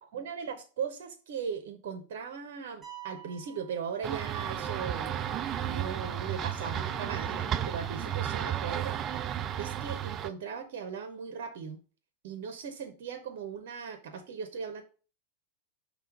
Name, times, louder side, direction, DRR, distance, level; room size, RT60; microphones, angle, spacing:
voice 1, 0.0-5.3 5.6-11.8 12.2-14.8, right 6 dB, 50° right, 8 dB, 0.8 m, -38 dB
sound 1, 2.8-4.7, right 12 dB, 15° right, 2.1 m, -49 dB
sound 2, 4.0-10.3, right 10 dB, 30° right, 0.4 m, -33 dB
sound 3, 4.3-8.7, left 7 dB, 20° left, 0.5 m, -50 dB
5.7 x 3.5 x 4.8 m, 0.36 s
figure-of-eight pair, 90°, 0 cm